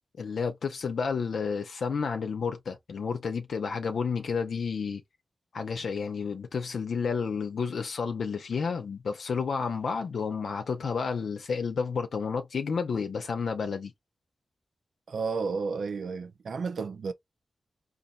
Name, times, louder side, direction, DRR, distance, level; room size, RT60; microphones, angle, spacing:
voice 1, 0.2-5.0 5.5-13.9, left 5 dB, 80° left, 0.7 m, -31 dB
voice 2, 15.1-17.1, right 4 dB, 80° right, 0.5 m, -32 dB
4.0 x 2.6 x 2.5 m
cardioid pair, 50°, 0 cm